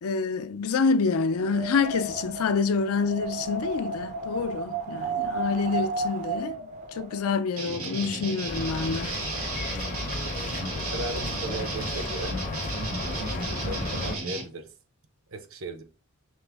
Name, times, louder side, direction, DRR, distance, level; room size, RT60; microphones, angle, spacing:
voice 1, 0.0-9.1, left 4 dB, 90° left, 0.4 m, -27 dB
Wind, 1.3-7.3, right 3 dB, 35° right, 0.4 m, -33 dB
sound 1, 7.6-14.4, right 3 dB, 80° right, 1.6 m, -34 dB
sound 2, 8.5-14.2, left 3 dB, 35° left, 0.5 m, -34 dB
voice 2, 10.9-12.4 13.0-14.7 15.3-15.8, right 2 dB, 65° right, 0.7 m, -37 dB
6.0 x 2.0 x 3.4 m
head